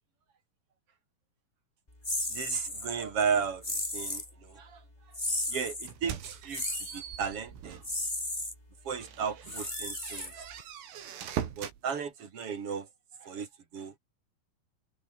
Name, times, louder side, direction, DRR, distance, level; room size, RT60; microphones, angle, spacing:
sound 1, 2.0-2.9 3.6-4.3 5.1-5.9 6.5-7.0 7.8-8.5 9.4-10.6, left 1 dB, 10° left, 3.6 m, -34 dB
voice 1, 2.3-4.8 5.5-7.8 8.8-10.5 11.6-12.9 13.2-13.9, right 6 dB, 35° right, 2.6 m, -35 dB
sound 2, 5.9-8.0 8.4-8.6 9.0-11.8, right 9 dB, 80° right, 5.5 m, -41 dB
open air
omnidirectional pair, 5.7 m